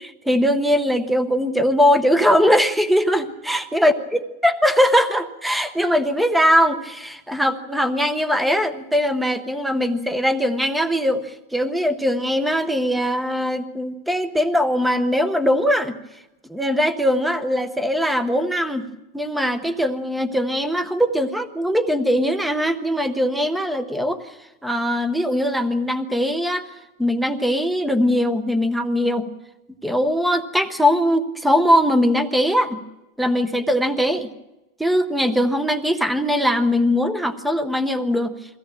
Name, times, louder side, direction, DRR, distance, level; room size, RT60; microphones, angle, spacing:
voice 1, 0.2-3.9 4.4-16.0 16.5-18.9 19.1-24.3 24.6-26.6 27.0-29.3 29.8-32.8 33.2-34.3 34.8-38.4, equal, ahead, 10 dB, 0.7 m, -20 dB
22.5 x 16.5 x 8.8 m, 1.0 s
supercardioid pair, 160°, 43 cm